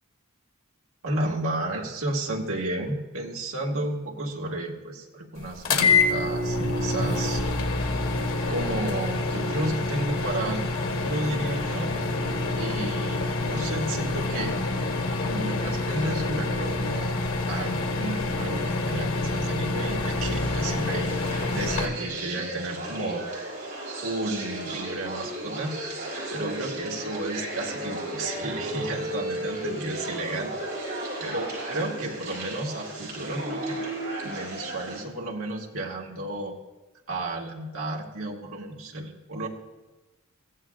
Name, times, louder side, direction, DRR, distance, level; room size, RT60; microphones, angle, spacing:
voice 1, 1.0-7.5 8.5-11.9 12.6-14.6 15.2-21.1 21.5-23.3 24.0-25.8 26.3-30.5 30.8-33.8 34.2-36.5 37.1-39.5, right 1 dB, 75° right, -1 dB, 1.9 m, -32 dB
sound 1, 5.6-21.9, left 3 dB, 70° left, 1.5 m, -27 dB
sound 2, 20.2-35.0, right 1 dB, 50° right, 6.0 m, -34 dB
22.5 x 15.0 x 2.4 m, 1.1 s
head